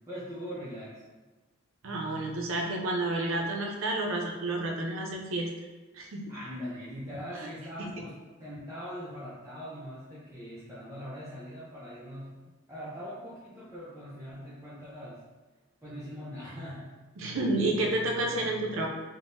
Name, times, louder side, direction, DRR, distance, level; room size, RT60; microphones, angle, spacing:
voice 1, 0.1-1.0 6.3-12.4 12.7-15.2 15.8-17.0, equal, 15° right, -10 dB, 0.4 m, -41 dB
voice 2, 1.8-5.5 5.9-6.3 7.8-7.9 17.2-18.9, right 2 dB, 70° right, 1 dB, 0.5 m, -30 dB
3.5 x 2.0 x 2.5 m, 1.2 s
head